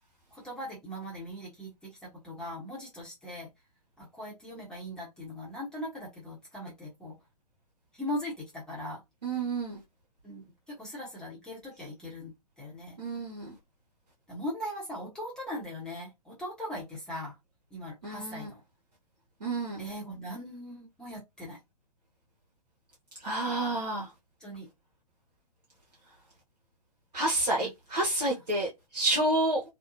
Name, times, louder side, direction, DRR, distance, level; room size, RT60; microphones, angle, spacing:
voice 1, 0.3-3.5 4.0-7.2 7.9-9.0 10.2-13.0 14.3-17.4 17.7-18.6 19.8-21.6 24.4-24.7 27.6-27.7, equal, 5° left, 0.8 m, -40 dB
voice 2, 9.2-9.8 13.0-13.6 18.0-18.5 19.4-19.8 23.2-24.1 27.1-29.6, right 2 dB, 85° right, 0.8 m, -29 dB
2.6 x 2.1 x 2.6 m
figure-of-eight pair, 120°, 21 cm